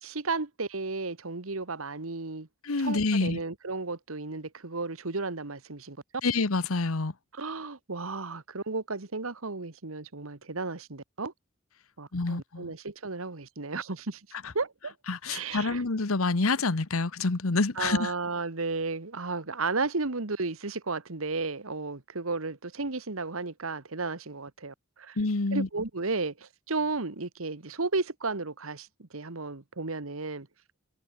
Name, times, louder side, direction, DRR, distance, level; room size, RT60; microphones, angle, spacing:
voice 1, 0.0-2.5 2.8-6.0 7.3-11.3 12.0-14.2 14.5-14.9 15.3-15.8 17.7-25.2 25.5-30.5, right 3 dB, 80° right, 1.5 m, -33 dB
voice 2, 2.6-3.4 6.2-7.1 12.1-12.7 15.1-18.1 25.2-25.7, left 3 dB, 85° left, 1.2 m, -27 dB
head